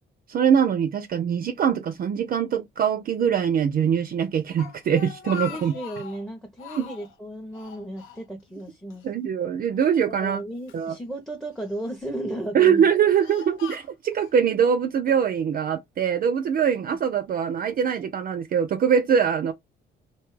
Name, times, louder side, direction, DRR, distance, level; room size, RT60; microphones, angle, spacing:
voice 1, 0.3-5.8 6.8-6.9 9.0-10.4 10.7-11.0 12.5-19.5, right 7 dB, 45° right, 0.4 m, -23 dB
Speech, 4.3-6.2 6.6-7.1 7.5-8.6 8.9-9.1 9.9-10.9 11.6-12.0 12.6-14.3, left 8 dB, 85° left, 0.6 m, -41 dB
voice 2, 5.5-9.1 10.2-12.8, right 1 dB, ahead, 0.6 m, -34 dB
2.7 x 2.2 x 3.1 m
cardioid pair, 90°, 20 cm